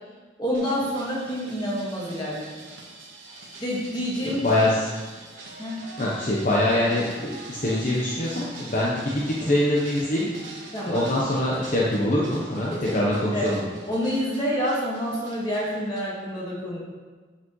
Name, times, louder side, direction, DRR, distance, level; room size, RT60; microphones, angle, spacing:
voice 1, 0.4-2.5 3.6-4.4 5.6-5.8 10.7-11.0 12.7-13.5 13.9-16.8, equal, 25° left, -5 dB, 1.6 m, -28 dB
sound 1, 0.5-16.1, right 3 dB, 80° right, 1.3 m, -44 dB
voice 2, 4.2-4.9 6.0-10.3 10.8-13.7, left 1 dB, 40° left, -6 dB, 0.9 m, -24 dB
8.1 x 6.0 x 3.1 m, 1.4 s
head